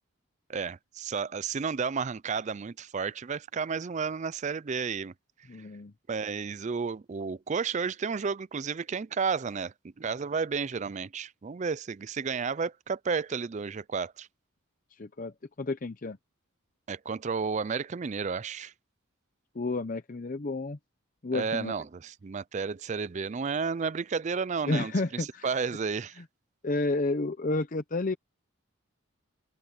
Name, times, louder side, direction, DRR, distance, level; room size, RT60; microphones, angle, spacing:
voice 1, 0.5-5.1 6.1-14.3 16.9-18.7 21.3-24.9 25.4-26.2, right 5 dB, 35° right, 0.4 m, -32 dB
voice 2, 5.5-5.9 14.9-16.2 19.5-20.8 21.2-21.7 24.7-25.6 26.6-28.1, left 2 dB, 40° left, 0.6 m, -31 dB
open air
head